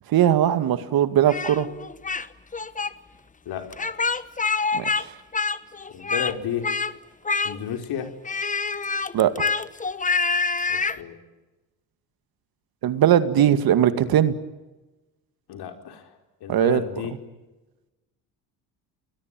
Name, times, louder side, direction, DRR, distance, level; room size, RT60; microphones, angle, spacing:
voice 1, 0.1-1.7 4.7-4.8 9.1-9.3 12.8-14.3 16.5-16.8, right 10 dB, 55° right, 11 dB, 2.2 m, -19 dB
Speech, 1.3-2.3 2.5-2.9 3.7-5.0 5.3-6.3 6.6-6.9 7.2-7.8 8.2-11.0, left 4 dB, 20° left, 1.2 m, -26 dB
voice 2, 3.4-3.9 5.9-6.7 7.4-8.1 10.7-11.2 15.5-16.1 16.4-17.2, left 9 dB, 60° left, 6 dB, 4.9 m, -32 dB
30.0 x 21.0 x 9.2 m, 1.1 s
supercardioid pair, 80°, 42 cm